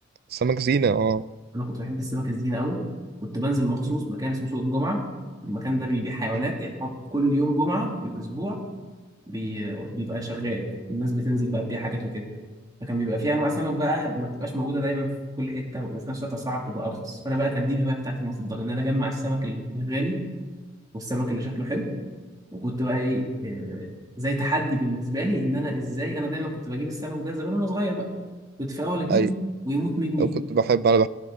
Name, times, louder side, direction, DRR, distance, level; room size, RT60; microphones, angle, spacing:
voice 1, 0.3-1.2 6.3-6.4 29.1-29.3 30.2-31.1, right 5 dB, 50° right, 17 dB, 0.4 m, -22 dB
voice 2, 1.5-2.8 3.2-5.0 5.4-8.6 9.3-12.3 12.8-15.1 15.4-20.2 20.9-21.9 22.5-23.9 24.2-28.1 28.6-29.3 29.6-30.3, equal, 20° right, 0 dB, 2.5 m, -27 dB
19.0 x 18.0 x 3.9 m, 1.3 s
head